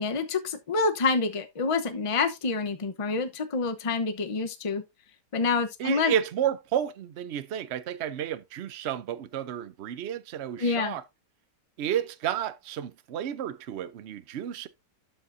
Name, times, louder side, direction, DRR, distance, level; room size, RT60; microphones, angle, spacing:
voice 1, 0.0-4.8 5.3-6.1 10.6-11.0, left 4 dB, 30° left, 0.7 m, -27 dB
voice 2, 5.8-11.0 11.8-14.7, right 10 dB, 70° right, 0.6 m, -31 dB
12.5 x 5.5 x 2.6 m
omnidirectional pair, 1.8 m